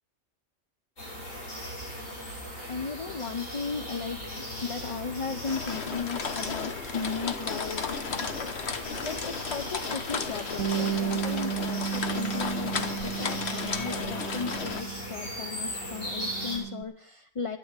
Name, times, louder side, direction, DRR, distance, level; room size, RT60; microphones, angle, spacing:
sound 1, 1.0-16.6, left 1 dB, 85° left, 6.0 m, -38 dB
voice 1, 2.3-17.6, left 5 dB, 40° left, 7 dB, 0.5 m, -36 dB
sound 2, 5.5-14.8, left 5 dB, 55° left, 1.3 m, -34 dB
Bass guitar, 10.6-15.3 15.6-16.8, right 8 dB, 85° right, 1.1 m, -34 dB
12.5 x 9.1 x 8.1 m, 0.67 s
omnidirectional pair, 1.3 m